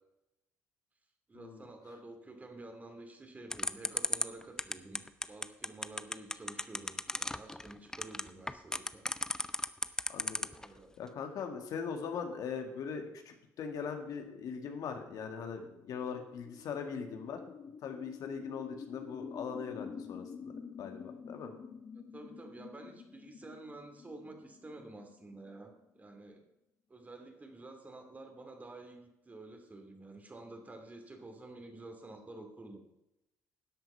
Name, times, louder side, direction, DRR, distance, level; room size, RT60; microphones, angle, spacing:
voice 1, 1.3-9.1 10.5-10.9 22.1-26.4 26.9-32.8, right 2 dB, 25° right, 5 dB, 2.6 m, -50 dB
sound 1, 3.5-10.7, left 1 dB, 10° left, 0.6 m, -34 dB
voice 2, 11.0-17.4 17.8-20.5 20.8-21.5, left 6 dB, 65° left, 5 dB, 1.9 m, -40 dB
sound 2, 15.0-26.2, left 6 dB, 45° left, 0.9 m, -49 dB
12.5 x 8.0 x 5.6 m, 0.90 s
supercardioid pair, 80°, 7 cm